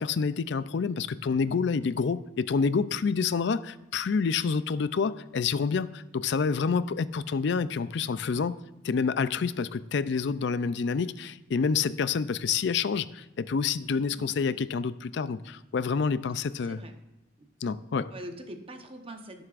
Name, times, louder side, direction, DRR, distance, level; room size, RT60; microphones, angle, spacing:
voice 1, 0.0-8.6 8.8-16.8 17.6-18.1, left 5 dB, 65° left, 15 dB, 0.4 m, -28 dB
voice 2, 16.6-17.0 17.4-17.5 18.1-19.4, right 1 dB, 30° right, 5 dB, 0.9 m, -43 dB
17.0 x 7.9 x 2.5 m, 0.95 s
head